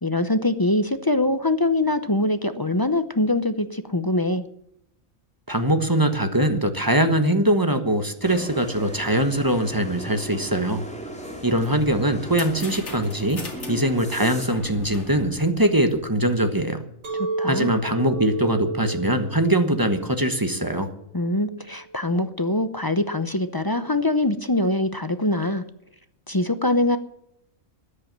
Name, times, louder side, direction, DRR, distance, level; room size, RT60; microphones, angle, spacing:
voice 1, 0.0-4.5 17.1-17.7 21.1-25.6 26.3-27.0, left 2 dB, 25° left, 11 dB, 0.6 m, -23 dB
voice 2, 5.5-10.8 11.4-16.8 17.5-20.9, right 1 dB, 15° right, 8 dB, 1.2 m, -22 dB
sound 1, 8.2-14.5, right 2 dB, 5° left, 3.1 m, -37 dB
sound 2, 11.6-16.3, left 2 dB, 55° left, 2.7 m, -40 dB
Chink clink, 17.0-22.2, right 2 dB, 85° right, 3.5 m, -32 dB
13.5 x 10.5 x 7.4 m, 0.76 s
omnidirectional pair, 1.4 m